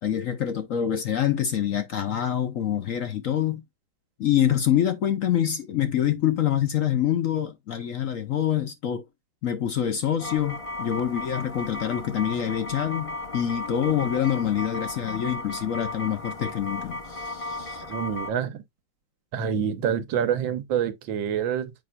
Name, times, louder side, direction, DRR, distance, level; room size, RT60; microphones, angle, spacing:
voice 1, 0.0-3.6 4.2-9.1 9.4-17.8, left 10 dB, 60° left, 0.9 m, -26 dB
sound 1, 10.2-18.3, left 1 dB, 30° left, 0.6 m, -35 dB
voice 2, 17.9-18.6 19.3-21.7, right 8 dB, 80° right, 1.6 m, -27 dB
7.8 x 5.4 x 2.3 m
omnidirectional pair, 2.1 m